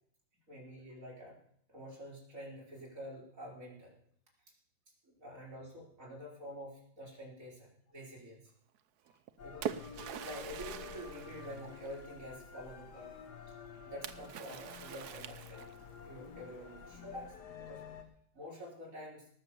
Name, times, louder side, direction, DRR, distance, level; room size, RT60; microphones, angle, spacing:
voice 1, 0.5-1.4 1.7-3.9 5.1-8.5 9.0-9.7 10.2-13.1 13.8-15.7 16.0-17.8 18.3-19.3, equal, 35° right, -3 dB, 4.8 m, -48 dB
Splash splatter, 9.1-12.2 14.0-16.0, right 9 dB, 65° right, 1.0 m, -44 dB
sound 1, 9.4-18.0, left 6 dB, 55° left, 1.8 m, -50 dB
18.5 x 7.1 x 6.8 m, 0.65 s
omnidirectional pair, 2.3 m